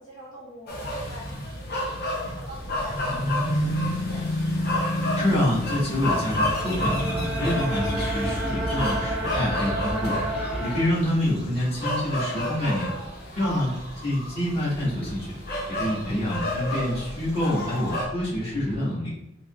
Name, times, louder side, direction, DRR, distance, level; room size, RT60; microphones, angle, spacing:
voice 1, 0.0-4.3 10.5-10.7 13.3-13.6, left 1 dB, 75° left, -5 dB, 1.0 m, -43 dB
sound 1, 0.7-18.1, left 1 dB, 50° left, 0.7 m, -30 dB
sound 2, 2.4-18.8, right 1 dB, 30° right, 0.4 m, -44 dB
sound 3, 5.0-10.9, right 1 dB, 5° right, 0.8 m, -30 dB
voice 2, 5.1-10.1 10.6-12.9 13.4-13.7 14.0-15.3 15.7-19.1, left 1 dB, 30° left, -8 dB, 1.5 m, -26 dB
4.7 x 2.8 x 2.4 m, 0.83 s
head